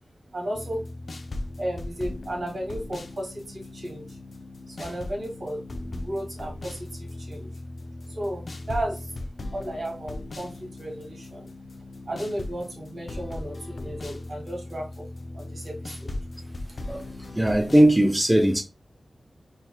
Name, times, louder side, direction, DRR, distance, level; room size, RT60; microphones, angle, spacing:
voice 1, 0.3-0.9 1.6-4.2 4.7-5.6 5.9-7.5 8.1-11.5 12.1-15.1 15.3-16.2, right 1 dB, 65° right, 2.0 m, -34 dB
sound 1, 0.5-17.8, left 2 dB, 60° left, 0.5 m, -38 dB
voice 2, 17.3-18.6, right 1 dB, 10° right, 0.4 m, -19 dB
4.6 x 2.8 x 2.3 m
wide cardioid pair, 100°, 0 cm